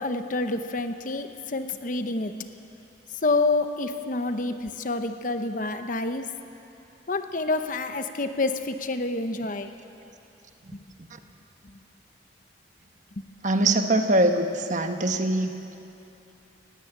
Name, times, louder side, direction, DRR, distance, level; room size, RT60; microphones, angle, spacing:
voice 1, 0.0-2.5 3.2-6.3 7.1-9.7 11.6-11.8 13.2-13.3, left 3 dB, 45° left, 8 dB, 0.9 m, -28 dB
voice 2, 13.4-15.6, right 1 dB, 45° right, 6 dB, 1.2 m, -23 dB
19.0 x 16.0 x 8.8 m, 2.7 s
head